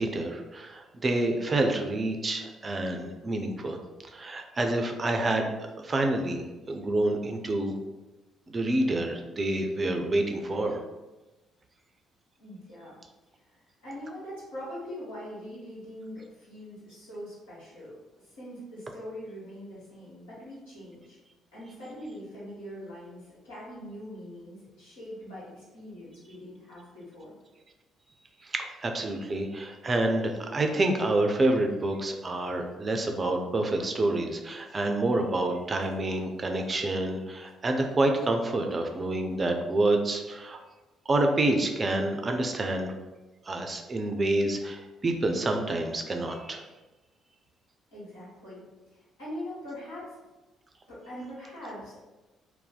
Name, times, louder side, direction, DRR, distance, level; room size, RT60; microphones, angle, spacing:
voice 1, 0.0-3.8 4.1-7.7 8.5-10.8 28.4-40.6 41.1-42.9 43.5-46.7, right 2 dB, 30° right, 4 dB, 0.4 m, -28 dB
voice 2, 12.4-13.0 13.4-18.0 18.2-21.2 21.5-27.3 47.9-48.6 48.9-50.1 50.9-52.0, equal, 80° left, -11 dB, 1.4 m, -42 dB
2.6 x 2.2 x 3.9 m, 1.1 s
figure-of-eight pair, 45°, 0 cm